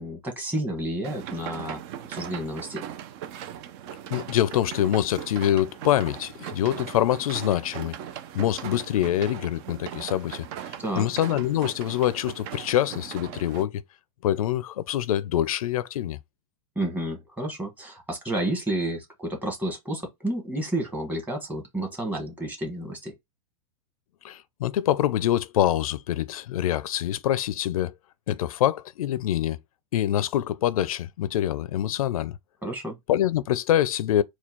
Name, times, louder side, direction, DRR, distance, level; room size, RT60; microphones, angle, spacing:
voice 1, 0.0-1.8 2.1-2.8 10.8-11.1 16.7-23.1 32.6-32.9, right 1 dB, 10° right, 1.5 m, -30 dB
sound 1, 1.0-13.6, right 10 dB, 45° right, 0.6 m, -39 dB
voice 2, 4.1-8.0 8.3-13.8 14.2-16.2 24.2-27.9 28.3-29.6 29.9-32.4 33.1-34.2, left 12 dB, 80° left, 0.5 m, -25 dB
4.4 x 2.3 x 4.4 m
supercardioid pair, 140°, 18 cm